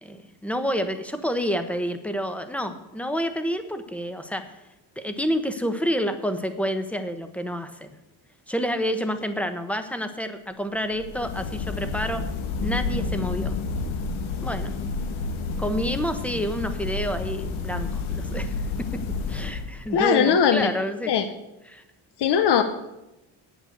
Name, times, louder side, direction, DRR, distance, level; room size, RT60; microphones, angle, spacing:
voice 1, 0.0-4.5 5.0-8.0 8.5-12.2 12.6-13.5 14.4-14.7 15.6-18.9 19.3-21.1 21.7-21.8, equal, 5° left, 9 dB, 1.0 m, -29 dB
sound 1, 10.9-20.0, left 4 dB, 85° left, 1.4 m, -30 dB
voice 2, 19.9-20.7 21.1-21.2 22.2-22.6, left 7 dB, 60° left, 8 dB, 1.0 m, -19 dB
8.6 x 8.1 x 8.0 m, 0.94 s
cardioid pair, 115°, 46 cm